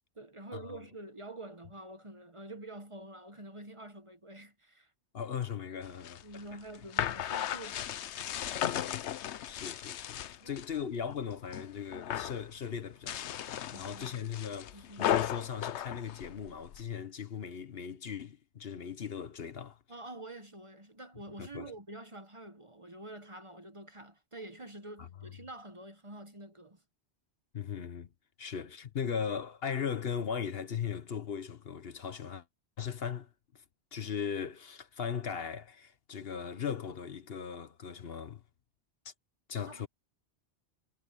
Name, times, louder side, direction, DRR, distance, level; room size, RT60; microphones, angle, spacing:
voice 1, 0.1-4.9 6.2-8.7 10.4-10.5 13.7-14.2 14.7-15.1 19.9-26.8 39.7-39.9, right 2 dB, 30° right, 1.1 m, -47 dB
voice 2, 5.1-6.6 9.4-19.8 21.4-21.7 25.0-25.1 27.5-28.1 28.4-32.5 32.8-33.6 33.9-38.4 39.0-39.1 39.5-39.9, left 7 dB, 65° left, 1.2 m, -38 dB
sound 1, 5.8-10.7 11.1-11.7 11.9-12.4 12.9-16.8, left 10 dB, 90° left, 1.0 m, -35 dB
omnidirectional pair, 1.1 m